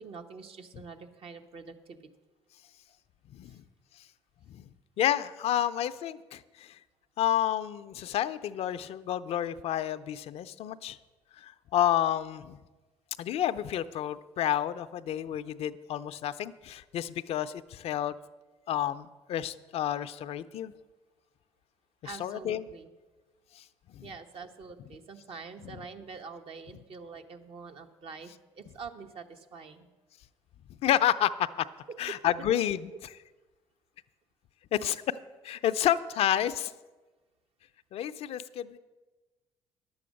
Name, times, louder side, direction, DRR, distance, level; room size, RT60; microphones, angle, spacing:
voice 1, 0.0-2.0 3.4-3.6 22.0-22.9 24.0-29.9 31.9-32.2 32.9-33.0, right 5 dB, 55° right, 6 dB, 1.0 m, -45 dB
voice 2, 3.3-3.6 4.5-4.7 5.0-6.7 7.2-11.0 11.4-12.6 13.2-18.2 18.7-20.7 22.2-22.7 23.6-23.7 23.9-24.1 30.8-31.7 32.0-32.9 34.7-35.0 35.4-36.7 37.9-38.8, left 11 dB, 65° left, 12 dB, 0.5 m, -30 dB
10.5 x 7.8 x 6.4 m, 1.2 s
supercardioid pair, 65°, 11 cm